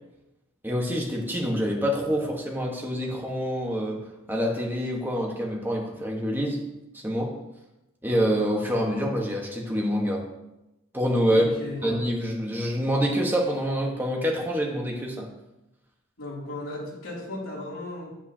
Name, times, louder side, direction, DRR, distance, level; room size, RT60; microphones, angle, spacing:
voice 1, 0.6-4.0 4.3-6.6 6.9-7.3 8.0-10.2 10.9-11.5 11.8-15.3, equal, 10° right, -1 dB, 1.2 m, -26 dB
voice 2, 11.3-11.9 16.2-18.1, left 1 dB, 70° left, -4 dB, 2.8 m, -35 dB
9.2 x 8.6 x 2.8 m, 0.94 s
head